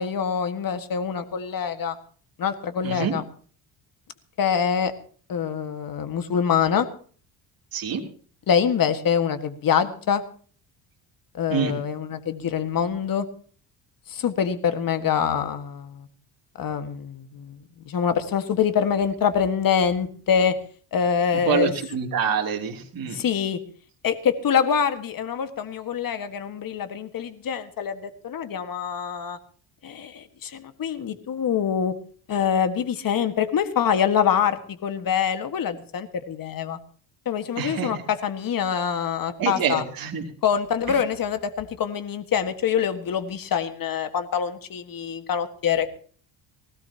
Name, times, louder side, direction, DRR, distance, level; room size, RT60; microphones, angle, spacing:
voice 1, 0.0-2.0 2.4-3.2 4.4-4.9 5.3-6.9 8.5-10.2 11.3-13.3 14.1-16.1 16.6-17.6 17.9-20.6 20.9-21.7 23.1-23.6 24.0-29.4 29.8-31.9 32.3-36.8 37.3-39.8 40.4-45.9, left 7 dB, 45° left, 9 dB, 1.7 m, -25 dB
voice 2, 7.7-8.0 11.5-11.7 21.5-23.2 37.6-37.9 39.4-40.2 40.9-41.0, right 6 dB, 45° right, 0 dB, 3.1 m, -26 dB
19.5 x 17.5 x 2.9 m, 0.43 s
cardioid pair, 105°, 48 cm